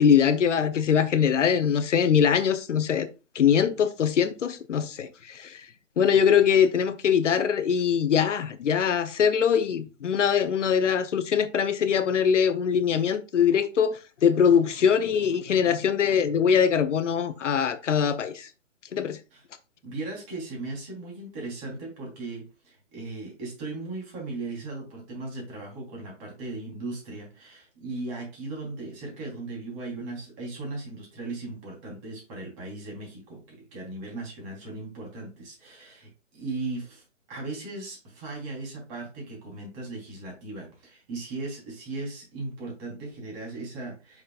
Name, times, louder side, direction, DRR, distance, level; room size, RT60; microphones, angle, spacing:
voice 1, 0.0-3.1 3.3-5.6 6.0-18.5 18.9-19.2, left 7 dB, 70° left, 0.8 m, -22 dB
voice 2, 19.8-44.2, right 3 dB, 25° right, 3.5 m, -37 dB
7.8 x 6.0 x 2.4 m
hypercardioid pair, 160°, 38 cm